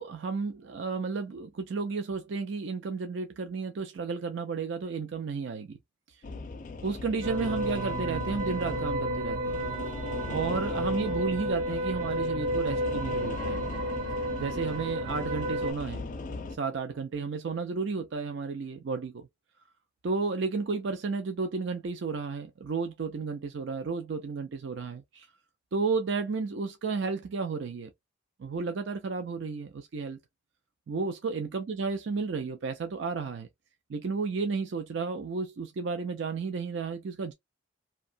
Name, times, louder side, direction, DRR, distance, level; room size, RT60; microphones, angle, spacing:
voice 1, 0.0-5.8 6.1-6.2 6.8-9.6 10.3-13.9 14.4-16.1 16.6-19.3 20.0-25.3 25.7-27.9 28.4-30.2 30.9-33.5 33.9-37.3, right 4 dB, 60° right, 0.4 m, -32 dB
sound 1, 6.2-16.6, left 3 dB, 40° left, 0.4 m, -39 dB
sound 2, 7.2-15.7, right 1 dB, 75° right, 1.1 m, -32 dB
2.7 x 2.2 x 2.5 m
head